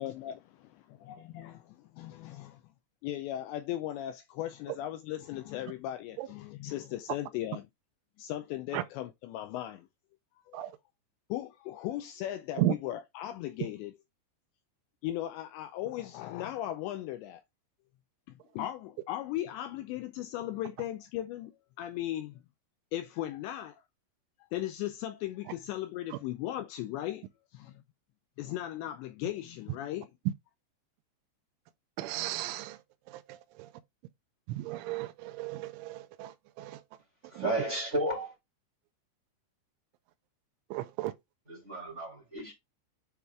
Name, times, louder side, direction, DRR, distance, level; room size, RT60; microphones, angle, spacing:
voice 1, 0.0-0.4 0.9-2.6 3.0-7.6 8.2-9.9 10.5-10.6 11.3-13.9 15.0-17.4 18.3-22.4 22.9-23.8 24.4-27.3 27.5-27.8 28.4-30.1, left 13 dB, 85° left, 2.6 m, -37 dB
voice 2, 32.0-33.7 34.5-36.8 37.3-37.5 40.7-41.1, right 15 dB, 85° right, 3.0 m, -35 dB
voice 3, 37.3-38.3 41.5-42.5, right 1 dB, 20° right, 2.3 m, -33 dB
9.4 x 3.6 x 3.4 m
omnidirectional pair, 5.5 m